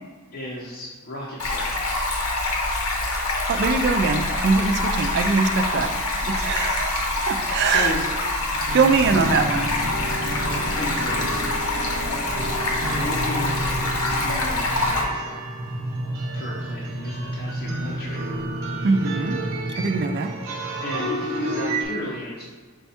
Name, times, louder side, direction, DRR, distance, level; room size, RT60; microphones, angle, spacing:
voice 1, 0.3-2.0 7.7-8.0 9.1-9.3 10.4-11.4 12.9-15.3 16.3-18.2 20.8-22.5, equal, 45° left, -4 dB, 0.6 m, -34 dB
Stream, 1.4-15.0, left 2 dB, 75° left, 0.8 m, -25 dB
voice 2, 3.5-5.9 6.2-7.0 7.3-7.9 8.7-9.7 18.8-19.4 19.8-20.3, right 4 dB, 50° right, 7 dB, 0.3 m, -22 dB
sound 1, 6.2-7.9 8.3-21.9, right 1 dB, 70° right, 0.7 m, -30 dB
5.2 x 2.3 x 4.2 m, 1.5 s
head